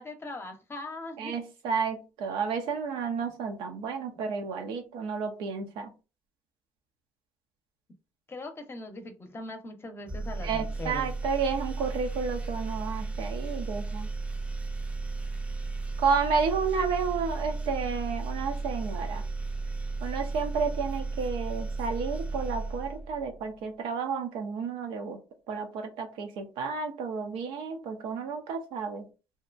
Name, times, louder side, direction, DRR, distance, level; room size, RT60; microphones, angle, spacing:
voice 1, 0.0-1.3 4.1-4.2 8.3-11.1, left 2 dB, 30° left, 6 dB, 0.7 m, -40 dB
voice 2, 1.2-5.9 10.4-14.1 16.0-19.2 20.0-25.2 25.5-29.0, right 5 dB, 80° right, 5 dB, 0.6 m, -31 dB
sound 1, 10.1-23.5, right 3 dB, 15° right, 0.6 m, -34 dB
2.7 x 2.2 x 2.4 m, 0.31 s
supercardioid pair, 80°, 8 cm